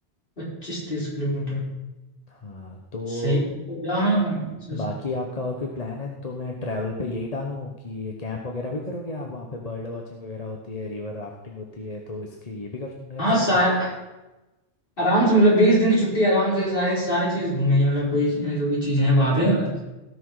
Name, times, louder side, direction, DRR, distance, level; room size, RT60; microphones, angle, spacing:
voice 1, 0.4-1.6 3.2-3.4 3.7-4.8 13.2-13.9 15.0-19.8, equal, 50° left, -7 dB, 5.0 m, -21 dB
voice 2, 2.3-3.4 4.7-13.6 17.4-17.5, left 2 dB, 35° left, 1 dB, 1.2 m, -32 dB
17.5 x 6.2 x 4.8 m, 1.0 s
omnidirectional pair, 1.1 m